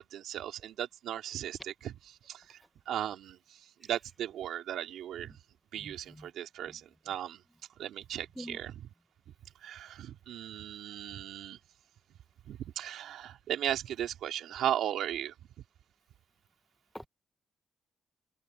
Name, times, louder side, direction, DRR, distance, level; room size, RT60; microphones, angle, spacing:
voice 1, 0.0-1.9 2.3-2.6 2.9-3.4 3.8-5.3 5.7-7.4 7.8-8.7 9.6-11.6 12.5-15.3, right 11 dB, 85° right, 3.4 m, -36 dB
voice 2, 5.8-6.3 6.7-6.8 8.4-8.6 16.9-17.1, equal, ahead, 1.0 m, -45 dB
open air
cardioid pair, 135°, 0 cm